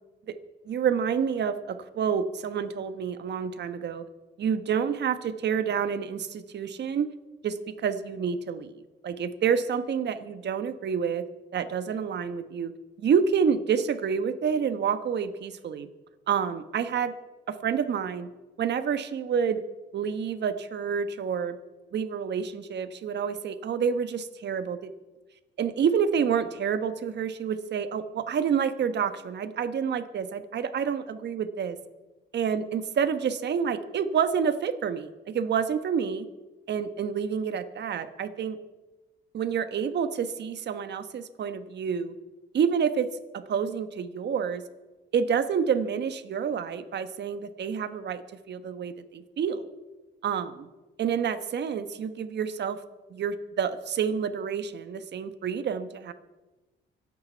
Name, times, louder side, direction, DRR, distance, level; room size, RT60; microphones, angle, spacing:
voice 1, 0.7-4.1 4.4-7.1 7.4-11.2 11.5-12.7 13.0-15.9 16.3-17.1 17.5-18.3 18.6-19.6 19.9-21.6 21.9-24.9 25.6-31.8 32.3-36.3 36.7-38.6 39.3-42.1 42.5-44.6 45.1-49.6 50.2-50.7 51.0-52.8 53.1-56.1, right 7 dB, 60° right, 10 dB, 1.2 m, -28 dB
25.0 x 8.8 x 4.6 m, 1.2 s
cardioid pair, 90°, 20 cm